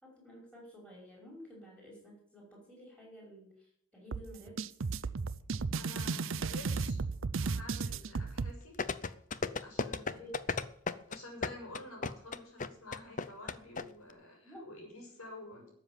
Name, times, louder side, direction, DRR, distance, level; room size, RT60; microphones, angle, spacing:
voice 1, 0.0-4.6 10.2-10.3 14.4-14.6, equal, 5° left, -2 dB, 5.6 m, -52 dB
sound 1, 4.1-8.5, right 4 dB, 60° right, 0.6 m, -34 dB
voice 2, 5.8-7.0 7.4-8.8 9.6-10.3 11.1-15.7, left 2 dB, 80° left, 1 dB, 5.8 m, -49 dB
sound 2, 8.8-13.8 14.1-14.2, left 4 dB, 35° left, 0.6 m, -34 dB
13.0 x 7.4 x 9.1 m, 0.68 s
head